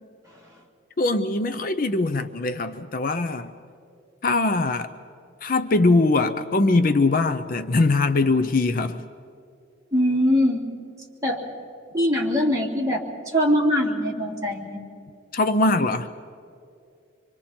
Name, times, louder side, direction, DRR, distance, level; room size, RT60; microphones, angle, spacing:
voice 1, 1.0-3.5 4.2-4.9 5.4-9.0 15.3-16.1, left 2 dB, 45° left, 10 dB, 0.6 m, -21 dB
voice 2, 9.9-10.6 11.2-11.4 11.9-14.8, equal, 20° right, -5 dB, 3.2 m, -22 dB
27.0 x 24.5 x 4.4 m, 2.5 s
head